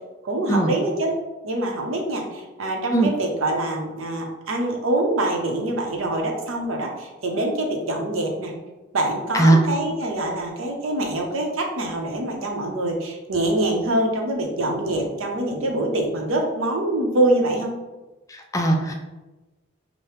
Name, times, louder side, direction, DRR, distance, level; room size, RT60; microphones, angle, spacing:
voice 1, 0.2-1.1 1.4-8.5 8.9-17.7, right 1 dB, 75° right, 2 dB, 0.7 m, -24 dB
voice 2, 18.5-18.9, right 2 dB, 15° left, 2 dB, 0.3 m, -17 dB
4.8 x 2.1 x 3.1 m, 1.1 s
head